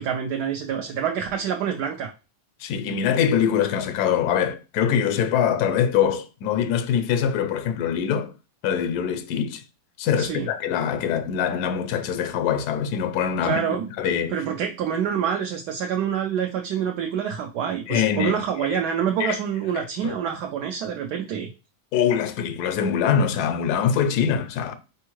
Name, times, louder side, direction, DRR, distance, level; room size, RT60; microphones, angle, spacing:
voice 1, 0.0-2.1 10.2-10.5 13.4-13.9 14.3-21.5, right 8 dB, 75° right, 1.1 m, -26 dB
voice 2, 2.6-8.3 8.6-9.6 10.0-13.6 14.0-14.3 17.9-18.8 19.2-19.3 19.7-20.2 21.9-24.8, left 8 dB, 70° left, 1.1 m, -23 dB
4.2 x 3.5 x 3.0 m
omnidirectional pair, 1.8 m